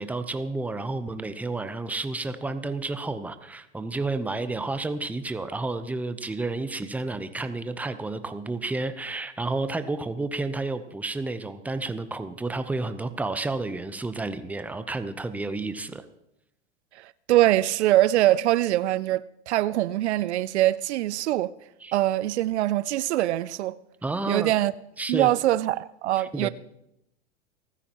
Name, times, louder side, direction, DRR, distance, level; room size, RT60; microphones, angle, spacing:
voice 1, 0.0-16.0 21.8-21.9 24.0-24.5 25.0-25.3 26.2-26.5, right 2 dB, 5° right, 0.7 m, -31 dB
voice 2, 17.0-21.5 21.9-23.8 24.3-24.7 25.1-26.5, right 15 dB, 70° right, 0.5 m, -23 dB
29.5 x 10.0 x 3.0 m
hypercardioid pair, 105°, 35 cm